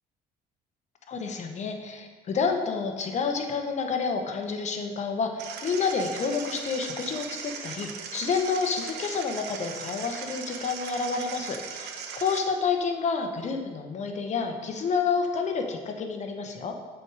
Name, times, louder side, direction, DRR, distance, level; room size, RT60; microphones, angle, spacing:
voice 1, 1.1-11.9 12.2-16.8, left 5 dB, 45° left, 4 dB, 1.0 m, -29 dB
sound 1, 5.4-12.4, right 6 dB, 85° right, 0.9 m, -39 dB
7.7 x 6.3 x 4.8 m, 1.5 s
cardioid pair, 110°, 17 cm